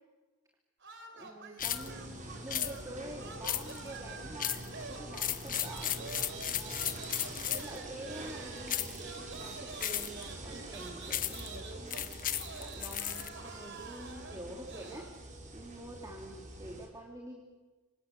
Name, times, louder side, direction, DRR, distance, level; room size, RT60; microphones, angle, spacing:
sound 1, 0.8-2.9 3.2-15.1, right 4 dB, 60° right, 3.8 m, -48 dB
voice 1, 1.1-15.1 15.5-17.4, right 1 dB, 15° right, 0 dB, 3.2 m, -47 dB
sound 2, 1.6-1.9 2.5-2.7 3.4-3.9 4.4-4.7 5.1-7.8 8.7-9.0 9.8-10.2 11.1-11.5 11.9-13.3, left 11 dB, 40° left, 1.3 m, -34 dB
sound 3, 1.6-16.9, right 1 dB, 35° right, 5.3 m, -45 dB
28.5 x 25.0 x 8.1 m, 1.2 s
head